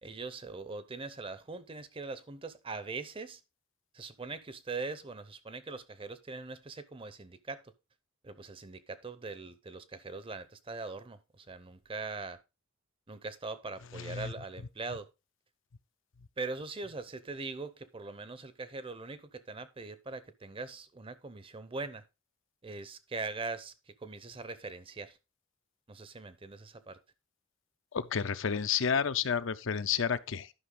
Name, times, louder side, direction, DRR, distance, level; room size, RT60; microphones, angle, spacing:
voice 1, 0.0-3.4 3.9-7.6 8.2-12.4 13.1-15.1 16.4-22.0 22.6-25.2 25.9-27.0, right 3 dB, 25° right, 0.6 m, -41 dB
voice 2, 13.9-14.3 27.9-30.5, left 7 dB, 65° left, 0.5 m, -31 dB
11.0 x 5.7 x 3.8 m
head